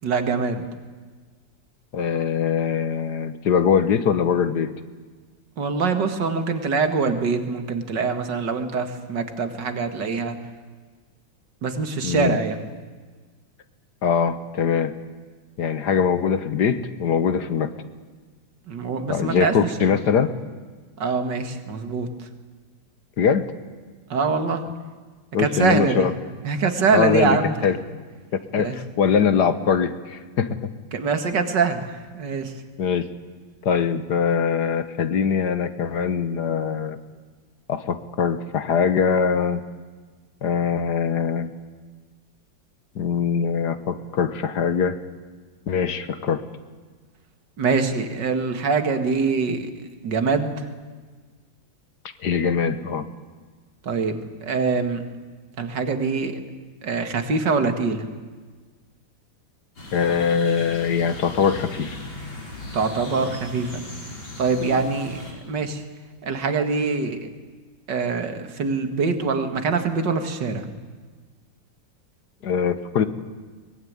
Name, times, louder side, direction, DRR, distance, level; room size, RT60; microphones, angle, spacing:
voice 1, 0.0-0.7 5.6-10.4 11.6-12.7 18.7-19.9 21.0-22.3 24.1-24.6 25.4-26.2 26.4-27.5 28.6-28.8 30.9-32.5 47.6-49.7 50.0-50.7 53.8-55.0 55.6-56.4 56.8-58.1 62.7-63.8 64.4-65.8 66.2-67.3 67.9-70.7, right 4 dB, 65° right, 8 dB, 2.5 m, -24 dB
voice 2, 1.9-4.7 12.0-12.4 14.0-14.9 15.6-17.7 19.1-20.3 23.2-23.5 25.3-26.1 26.9-27.4 27.6-27.8 28.3-30.6 32.8-33.0 33.6-37.0 37.7-39.6 40.4-41.5 42.9-45.0 45.7-46.4 52.2-53.1 59.9-62.0 72.4-73.1, left 7 dB, 60° left, 12 dB, 1.6 m, -22 dB
sound 1, 59.8-65.3, left 1 dB, 85° left, 6.2 m, -37 dB
23.5 x 20.0 x 9.6 m, 1.4 s
omnidirectional pair, 2.1 m